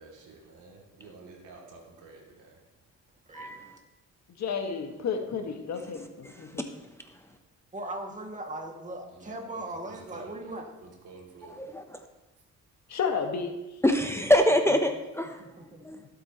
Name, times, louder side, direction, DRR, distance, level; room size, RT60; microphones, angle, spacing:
voice 1, 0.0-2.6 9.1-10.5 11.0-11.5, right 3 dB, 85° right, -1 dB, 2.7 m, -50 dB
voice 2, 3.3-3.8 7.7-10.7 15.4-16.1, right 1 dB, 25° right, 1 dB, 2.1 m, -39 dB
voice 3, 4.4-6.6 12.9-13.5 14.7-14.8, left 6 dB, 65° left, 4 dB, 1.6 m, -32 dB
voice 4, 11.5-12.0 13.8-15.4 15.8-16.0, left 1 dB, 10° left, 5 dB, 0.8 m, -24 dB
16.0 x 8.2 x 3.0 m, 1.0 s
cardioid pair, 90°, 30 cm